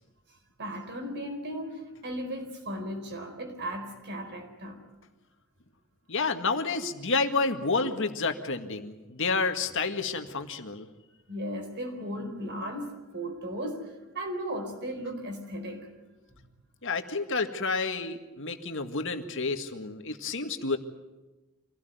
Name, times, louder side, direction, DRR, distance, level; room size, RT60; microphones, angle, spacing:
voice 1, 0.6-4.8 11.3-15.9, equal, 55° right, 4.5 m, -36 dB
voice 2, 6.1-10.9 16.8-20.8, left 4 dB, 60° left, 1.9 m, -30 dB
26.0 x 17.0 x 9.3 m
head